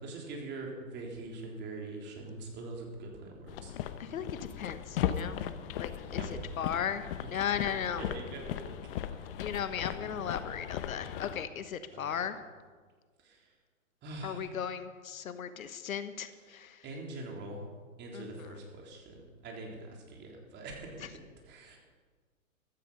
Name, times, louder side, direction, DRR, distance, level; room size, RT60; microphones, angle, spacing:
voice 1, 0.0-3.7 6.1-6.3 8.0-8.7 9.2-9.3 11.9-12.2 14.0-14.5 16.8-17.6 18.0-19.1 19.4-19.8 20.1-21.0 21.5-21.8, right 2 dB, 25° right, 0 dB, 3.4 m, -43 dB
sound 1, 3.5-11.5, left 10 dB, 40° left, 0.9 m, -37 dB
voice 2, 4.0-5.4 5.7-8.0 9.4-12.4 14.2-16.9 18.1-18.6 21.0-21.1, left 8 dB, 75° left, 11 dB, 1.2 m, -37 dB
15.0 x 13.5 x 5.5 m, 1.5 s
hypercardioid pair, 130°, 42 cm